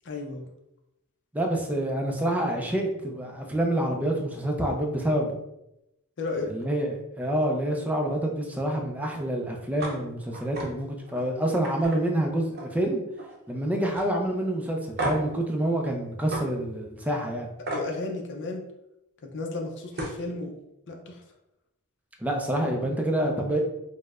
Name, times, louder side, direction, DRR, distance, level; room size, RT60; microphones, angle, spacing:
voice 1, 0.0-0.4 6.2-6.5 17.7-18.6 19.2-20.5 20.9-21.2, left 3 dB, 55° left, 2 dB, 0.5 m, -33 dB
voice 2, 1.3-5.4 6.5-13.0 13.5-17.5 22.2-23.6, right 1 dB, 5° right, 1 dB, 0.4 m, -27 dB
sound 1, 9.8-10.0 10.3-10.7 11.1-11.2 11.6-12.8 13.1-13.5 13.9-14.1 15.0-15.3 16.3-16.4 17.7-17.9 19.5-19.6 19.9-20.2, right 1 dB, 45° right, 0.7 m, -33 dB
4.4 x 2.1 x 2.4 m, 0.87 s
head